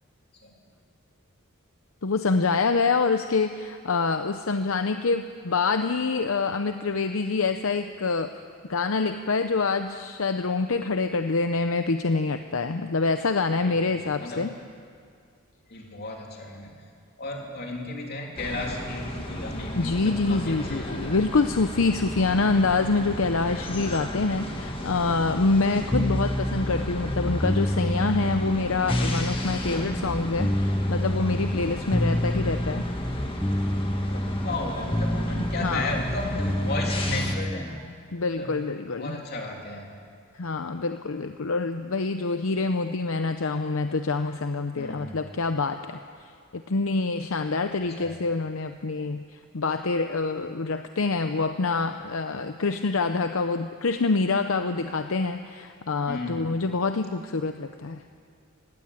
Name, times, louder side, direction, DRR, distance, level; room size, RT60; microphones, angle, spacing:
voice 1, 2.0-8.3 8.7-14.5 19.8-32.9 35.6-35.9 38.1-39.2 40.4-46.0 46.5-58.0, left 3 dB, 70° left, 8 dB, 0.7 m, -26 dB
voice 2, 13.6-14.5 15.7-16.8 17.2-21.1 31.6-31.8 34.1-38.0 38.3-38.6 38.9-39.9 44.8-45.2 47.6-48.1 56.1-56.5, left 2 dB, 50° left, 0 dB, 3.3 m, -34 dB
sound 1, 18.4-37.3, left 1 dB, 25° left, 1.7 m, -34 dB
sound 2, 25.9-37.8, left 1 dB, 10° left, 0.5 m, -28 dB
19.0 x 16.5 x 8.8 m, 2.2 s
head